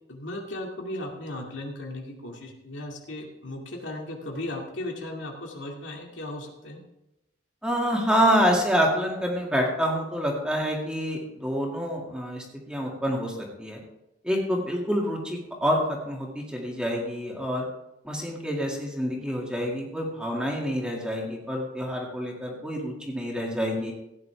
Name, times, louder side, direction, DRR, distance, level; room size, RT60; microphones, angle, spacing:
voice 1, 0.1-6.8, left 1 dB, 80° left, 0 dB, 2.3 m, -36 dB
voice 2, 7.6-13.8 14.2-17.7 18.0-23.9, equal, 5° right, -2 dB, 2.1 m, -27 dB
16.0 x 9.7 x 3.5 m, 0.89 s
head